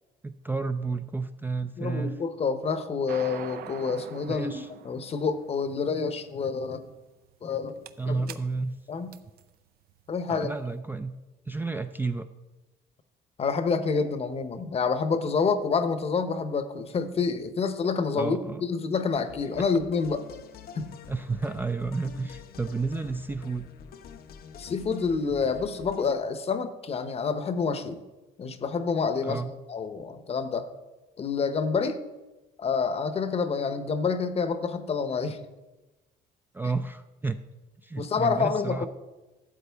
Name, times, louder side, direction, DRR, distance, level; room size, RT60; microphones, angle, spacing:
voice 1, 0.2-2.2 4.3-4.7 8.0-8.8 10.3-11.1 11.5-12.3 18.1-18.6 21.1-23.7 29.2-29.5 36.5-37.4 37.8-38.9, right 3 dB, 10° right, 8 dB, 0.3 m, -31 dB
voice 2, 1.8-6.9 7.4-7.8 8.1-8.2 8.9-9.1 10.1-10.5 13.4-20.2 20.7-20.9 24.6-28.0 28.4-29.4 29.7-30.7 31.2-32.0 32.6-35.4 38.0-38.9, left 5 dB, 35° left, 11 dB, 0.8 m, -28 dB
sound 1, 3.1-10.6, right 10 dB, 65° right, 0.5 m, -45 dB
sound 2, 19.1-26.1, left 7 dB, 65° left, 0.8 m, -47 dB
12.0 x 7.9 x 3.5 m, 1.1 s
cardioid pair, 110°, 17 cm